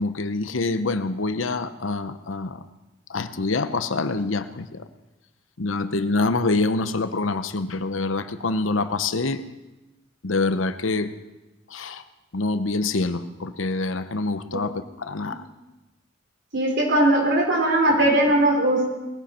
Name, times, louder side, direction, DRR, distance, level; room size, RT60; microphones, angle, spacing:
voice 1, 0.0-2.6 3.1-4.9 5.6-9.4 10.2-11.1 11.7-12.0 12.3-15.4, left 3 dB, 75° left, 11 dB, 0.9 m, -26 dB
voice 2, 16.5-18.9, right 1 dB, 60° right, 1 dB, 3.6 m, -19 dB
19.5 x 15.0 x 4.4 m, 1.1 s
head